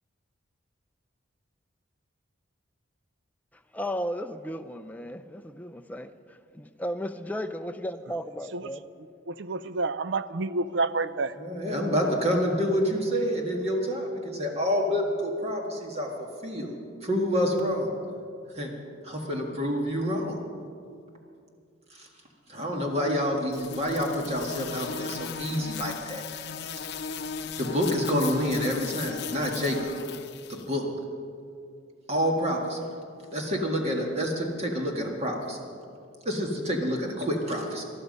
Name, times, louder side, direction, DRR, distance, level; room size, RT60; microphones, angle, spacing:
voice 1, 3.7-8.8, equal, 10° left, 8 dB, 0.5 m, -35 dB
voice 2, 9.3-11.3, right 3 dB, 60° right, 14 dB, 0.5 m, -29 dB
voice 3, 11.4-16.1 16.4-16.7 17.0-17.9 18.5-18.7 19.0-20.4 21.9-22.1 22.5-26.2 27.6-29.9 30.5-30.8 32.1-32.8 33.3-35.6 36.3-37.8, equal, 30° right, 0 dB, 1.8 m, -28 dB
sound 1, 23.5-30.6, left 5 dB, 55° left, 0.7 m, -37 dB
20.0 x 12.5 x 5.4 m, 2.4 s
head